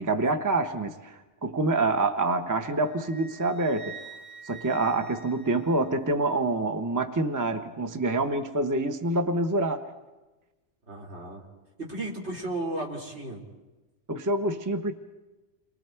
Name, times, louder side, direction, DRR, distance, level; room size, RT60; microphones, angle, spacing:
voice 1, 0.0-4.0 4.4-9.8 14.1-14.9, right 2 dB, 20° right, 7 dB, 0.8 m, -26 dB
Wind instrument woodwind instrument, 2.7-6.2, right 5 dB, 85° right, 2.0 m, -47 dB
voice 2, 10.9-11.4 11.8-13.4, right 2 dB, 70° right, -2 dB, 3.6 m, -34 dB
30.0 x 23.0 x 4.5 m, 1.1 s
omnidirectional pair, 1.2 m